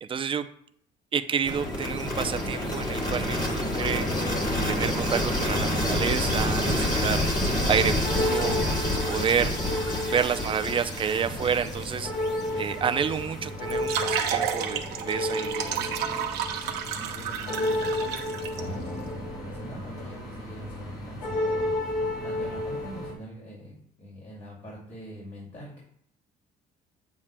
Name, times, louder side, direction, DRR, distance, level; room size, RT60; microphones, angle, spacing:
voice 1, 0.0-0.5 1.1-4.1 4.7-7.2 7.7-8.6 9.0-9.5 10.0-12.1 12.6-15.8, right 7 dB, 30° right, 9 dB, 0.5 m, -29 dB
sound 1, 1.4-13.4, left 1 dB, 25° left, 1.7 m, -28 dB
sound 2, 3.7-23.1, left 1 dB, 75° left, 2.3 m, -33 dB
sound 3, 13.7-18.6, right 8 dB, 75° right, 0.8 m, -31 dB
voice 2, 16.9-19.0 19.4-21.6 22.2-25.8, right 1 dB, 45° left, -5 dB, 2.6 m, -43 dB
8.3 x 7.4 x 2.2 m, 0.67 s
cardioid pair, 110°, 17 cm